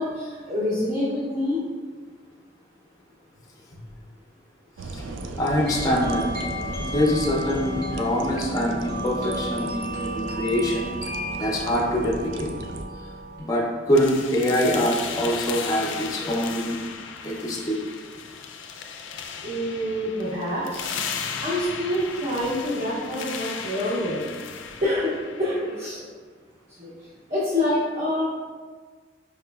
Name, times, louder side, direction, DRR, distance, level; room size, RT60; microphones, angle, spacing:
voice 1, 0.0-1.6 19.4-20.9 21.4-24.2 24.8-26.0 26.8-26.9 27.3-28.3, left 1 dB, 35° right, -9 dB, 0.7 m, -26 dB
sound 1, 4.8-12.9, right 2 dB, 85° right, 0.3 m, -36 dB
voice 2, 5.4-6.3 6.8-10.9 11.3-12.5 13.4-16.8 17.2-17.8, equal, 20° left, -2 dB, 0.5 m, -24 dB
sound 2, 5.6-13.4, equal, 65° right, 1.2 m, -34 dB
sound 3, 13.9-25.9, left 6 dB, 90° left, 0.4 m, -36 dB
4.8 x 2.9 x 2.3 m, 1.5 s
head